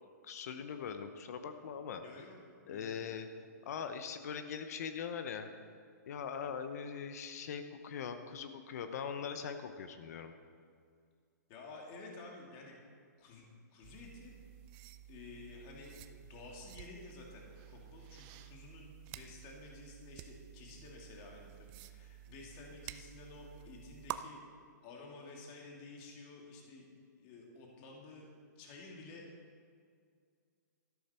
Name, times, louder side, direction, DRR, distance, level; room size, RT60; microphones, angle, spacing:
voice 1, 0.2-2.0 2.7-3.3 3.6-5.5 6.0-10.3, left 7 dB, 60° left, 8 dB, 0.9 m, -41 dB
voice 2, 2.0-2.4 2.7-3.0 11.5-12.7 13.2-13.4 13.7-14.3 15.1-15.9 16.2-24.4 24.8-26.9 27.1-28.3 28.6-29.3, left 3 dB, 35° left, -1 dB, 2.7 m, -52 dB
sound 1, 13.8-24.2, right 14 dB, 35° right, 0.5 m, -51 dB
13.0 x 11.5 x 4.4 m, 2.1 s
hypercardioid pair, 140°, 10 cm